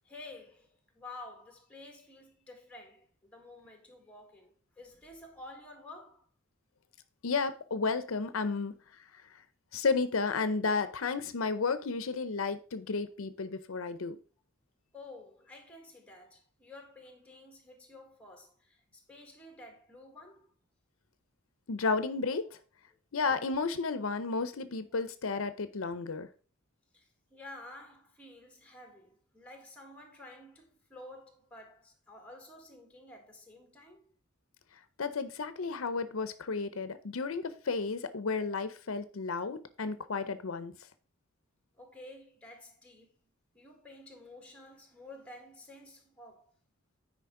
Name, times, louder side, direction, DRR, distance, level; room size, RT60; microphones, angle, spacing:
voice 1, 0.1-6.3 14.9-20.5 22.5-22.6 26.9-34.1 41.8-43.1 43.5-46.5, left 2 dB, 5° left, 1.8 m, -51 dB
voice 2, 7.2-9.3 9.7-14.2 21.7-22.6 23.1-26.3 35.0-40.7, left 4 dB, 85° left, 0.7 m, -32 dB
9.4 x 5.0 x 3.8 m
head